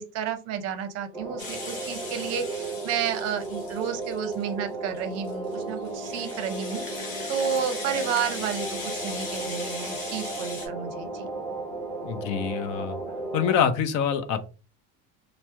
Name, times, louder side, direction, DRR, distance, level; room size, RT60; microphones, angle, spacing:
voice 1, 0.0-11.3, right 8 dB, 50° right, 8 dB, 0.6 m, -31 dB
sound 1, 1.1-13.6, right 2 dB, ahead, 0.6 m, -35 dB
Rattle (instrument), 1.4-4.4 4.9-10.7, left 3 dB, 35° left, 0.9 m, -39 dB
voice 2, 12.0-13.0 13.3-14.4, left 7 dB, 55° left, 9 dB, 0.5 m, -25 dB
2.9 x 2.0 x 3.3 m, 0.33 s
cardioid pair, 160°, 34 cm